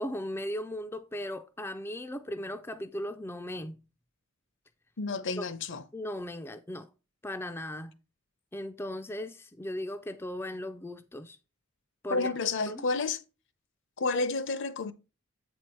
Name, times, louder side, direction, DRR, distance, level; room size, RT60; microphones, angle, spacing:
voice 1, 0.0-3.8 5.4-5.5 5.9-6.9 7.2-7.9 8.5-11.4 12.0-12.3 12.7-12.9, left 1 dB, 10° left, 0.4 m, -37 dB
voice 2, 5.0-5.8 12.1-13.2 14.0-14.9, left 3 dB, 55° left, 0.7 m, -30 dB
7.9 x 4.5 x 4.4 m
head